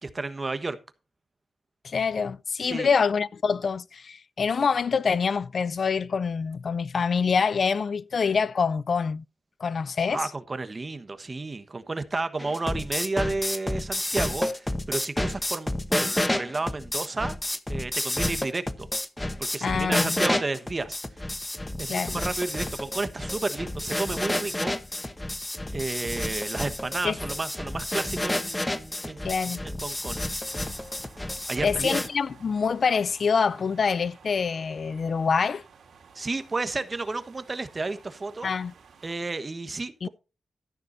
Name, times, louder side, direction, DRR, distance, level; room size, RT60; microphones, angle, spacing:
voice 1, 0.0-0.8 2.6-2.9 10.1-17.4 17.7-18.9 19.4-21.0 21.8-24.7 25.7-29.2 29.6-30.2 31.5-31.9 36.1-38.5 39.0-40.1, right 3 dB, 30° right, 1.2 m, -32 dB
voice 2, 1.8-9.2 9.6-10.2 19.6-20.2 21.9-22.2 27.0-27.2 29.2-29.6 31.6-35.6 38.4-38.7 40.0-40.1, left 5 dB, 55° left, 0.4 m, -25 dB
sound 1, 12.4-32.1, left 1 dB, 15° left, 0.9 m, -30 dB
sound 2, 30.4-39.2, right 6 dB, 80° right, 2.7 m, -53 dB
13.0 x 11.0 x 2.7 m
wide cardioid pair, 115°, 0 cm